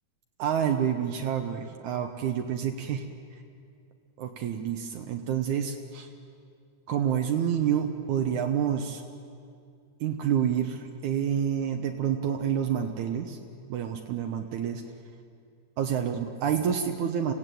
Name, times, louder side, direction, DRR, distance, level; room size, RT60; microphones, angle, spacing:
voice 1, 0.4-3.0 4.2-6.1 6.9-9.0 10.0-13.4 13.7-14.8 15.8-17.3, right 8 dB, 75° right, 4 dB, 2.4 m, -28 dB
27.0 x 16.5 x 9.2 m, 2.4 s
omnidirectional pair, 3.6 m